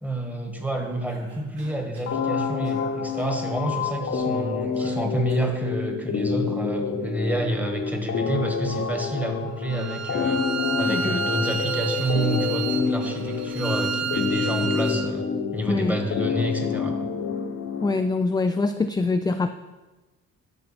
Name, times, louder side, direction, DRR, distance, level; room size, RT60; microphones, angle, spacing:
voice 1, 0.0-10.4 10.8-17.1, right 1 dB, 5° right, 3 dB, 1.6 m, -29 dB
Cough, 1.1-2.2 2.6-2.9 3.2-3.4 4.7-5.6, right 3 dB, 75° right, 2.6 m, -50 dB
sound 1, 2.1-18.1, left 5 dB, 55° left, 1.1 m, -28 dB
Bowed string instrument, 9.7-15.1, right 5 dB, 60° right, 0.8 m, -31 dB
voice 2, 10.9-11.2 15.7-16.0 17.8-19.5, left 3 dB, 15° left, 8 dB, 0.3 m, -24 dB
12.5 x 5.5 x 4.3 m, 1.2 s
cardioid pair, 90°, 30 cm